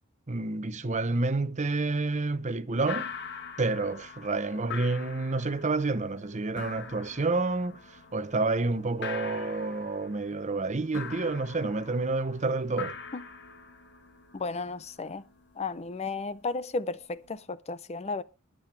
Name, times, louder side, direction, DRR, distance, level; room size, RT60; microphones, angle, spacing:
voice 1, 0.3-3.1 3.6-13.0, right 3 dB, 35° right, 0.8 m, -29 dB
sound 1, 2.9-17.4, left 6 dB, 55° left, 1.7 m, -44 dB
voice 2, 14.3-15.2 15.6-18.2, left 3 dB, 30° left, 0.5 m, -34 dB
21.0 x 7.7 x 3.3 m
head